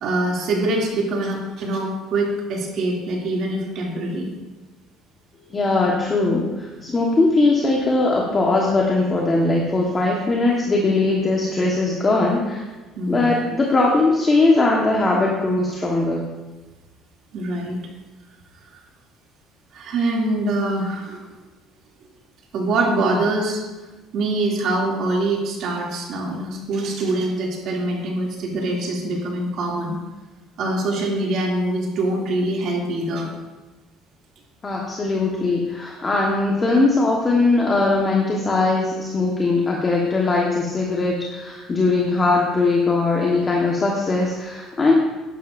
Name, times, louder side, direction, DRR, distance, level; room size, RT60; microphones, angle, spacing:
voice 1, 0.0-4.3 13.0-13.4 17.3-17.8 19.7-21.4 22.5-23.6 24.1-30.0 30.6-33.3 42.2-42.3, right 2 dB, 55° right, -1 dB, 2.6 m, -24 dB
voice 2, 5.5-6.4 6.8-12.6 13.1-16.3 34.6-44.9, left 3 dB, 25° left, -2 dB, 1.3 m, -20 dB
12.0 x 11.5 x 2.6 m, 1.2 s
cardioid pair, 130°, 0 cm